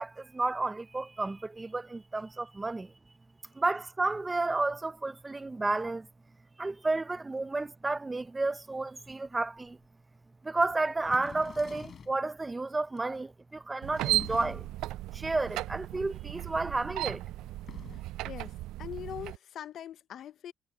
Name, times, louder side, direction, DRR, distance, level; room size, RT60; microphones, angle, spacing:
voice 1, 0.0-2.9 3.6-6.1 6.6-9.8 10.4-14.7 15.1-17.2, right 3 dB, 20° right, 0.5 m, -31 dB
sound 1, 9.8-9.9 11.0-12.2 13.9-14.8 17.5-18.2, left 7 dB, 45° left, 4.5 m, -47 dB
sound 2, 13.8-19.4, right 17 dB, 85° right, 0.3 m, -35 dB
voice 2, 17.9-20.5, left 10 dB, 60° left, 0.6 m, -43 dB
cardioid pair, 105°, 0 cm